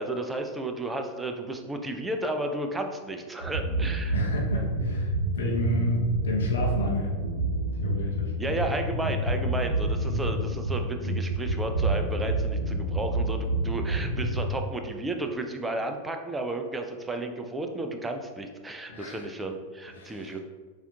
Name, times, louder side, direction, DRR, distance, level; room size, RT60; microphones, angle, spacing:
voice 1, 0.0-4.1 8.4-20.4, right 2 dB, 10° right, 5 dB, 0.4 m, -33 dB
sound 1, 3.4-14.5, right 1 dB, 70° right, 0.9 m, -28 dB
voice 2, 4.1-7.1 7.8-8.3 10.1-10.2 18.9-19.3 19.9-20.4, equal, 65° left, -2 dB, 0.6 m, -31 dB
6.8 x 2.5 x 2.2 m, 1.5 s
figure-of-eight pair, 90°, 0 cm